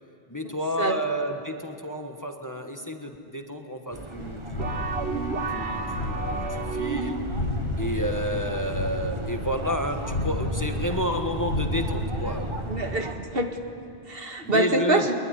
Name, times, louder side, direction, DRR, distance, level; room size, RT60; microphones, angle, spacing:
voice 1, 0.3-4.9 5.5-7.3 7.8-12.5 14.4-15.1, equal, 20° left, 4 dB, 1.4 m, -30 dB
sound 1, 3.9-13.1, right 2 dB, 30° right, 1.3 m, -38 dB
sound 2, 4.2-12.8, left 1 dB, 65° left, 2.3 m, -32 dB
sound 3, 4.6-7.5, right 4 dB, 85° right, 1.4 m, -31 dB
voice 2, 12.7-13.5 14.1-15.1, right 2 dB, 60° right, 4 dB, 2.0 m, -25 dB
22.5 x 21.5 x 9.9 m, 2.5 s
omnidirectional pair, 1.1 m